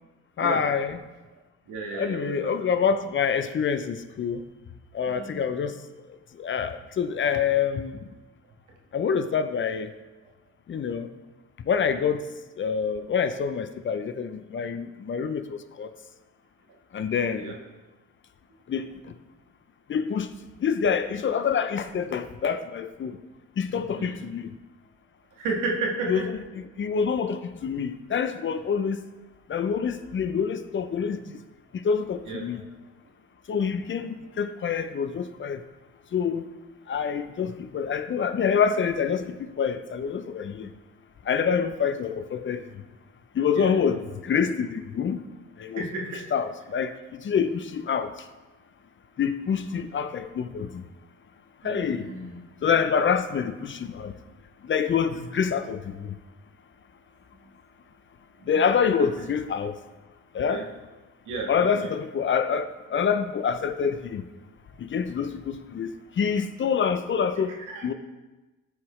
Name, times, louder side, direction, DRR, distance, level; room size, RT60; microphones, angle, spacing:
voice 1, 0.4-1.0 1.9-4.4 4.9-5.8 6.4-8.0 8.9-9.9 10.7-11.1 11.7-12.2 12.6-15.9 16.9-17.5 18.7-18.9 19.9-20.3 20.6-23.2 23.6-24.5 26.1-26.3 26.8-29.0 29.5-31.2 31.7-32.6 33.5-35.6 36.1-36.5 36.9-40.7 41.3-42.6 43.3-45.2 45.6-45.8 46.3-48.1 49.2-50.8 51.6-52.1 52.6-54.1 54.6-56.1 58.5-59.7 60.3-60.6 61.5-64.3 64.8-67.5 67.8-67.9, left 6 dB, 40° left, 10 dB, 0.6 m, -26 dB
voice 2, 1.7-2.9 5.1-5.4 17.4-17.6 24.0-24.2 25.4-26.1 28.5-28.6 32.3-32.4 43.5-43.7 45.8-46.2 51.6-52.4 58.4-58.7 59.0-59.3 60.5-60.6 61.3-61.9 67.7-67.9, right 3 dB, 85° right, -2 dB, 1.9 m, -33 dB
13.5 x 4.7 x 3.2 m, 1.2 s
cardioid pair, 90°, 30 cm